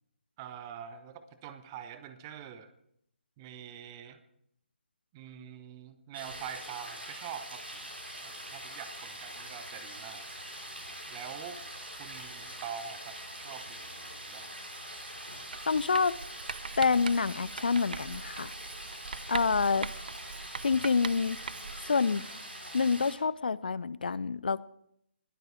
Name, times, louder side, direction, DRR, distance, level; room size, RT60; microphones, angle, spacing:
voice 1, 0.4-2.7 3.4-4.2 5.1-7.8 8.2-10.2 11.1-11.6 12.0-14.5, right 8 dB, 20° right, 0.9 m, -45 dB
sound 1, 6.1-23.1, right 1 dB, 75° right, 6.0 m, -44 dB
Writing, 15.5-21.9, right 5 dB, 50° right, 0.4 m, -41 dB
voice 2, 15.7-16.1 16.8-18.5 19.3-19.9 20.6-21.4 21.8-22.2 22.7-24.6, left 5 dB, 55° left, 0.4 m, -27 dB
20.5 x 7.8 x 4.6 m
figure-of-eight pair, 145°, 6 cm